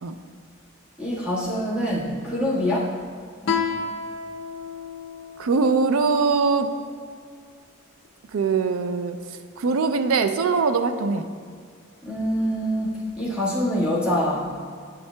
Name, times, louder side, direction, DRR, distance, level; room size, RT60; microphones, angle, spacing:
voice 1, 1.0-2.9 12.0-14.6, equal, 5° right, -8 dB, 1.5 m, -25 dB
Guitar, 3.4-6.7, left 5 dB, 65° left, 0.5 m, -31 dB
voice 2, 5.4-6.7 8.3-9.2 9.6-11.3, right 4 dB, 75° right, 9 dB, 0.4 m, -22 dB
9.4 x 5.5 x 2.2 m, 2.1 s
head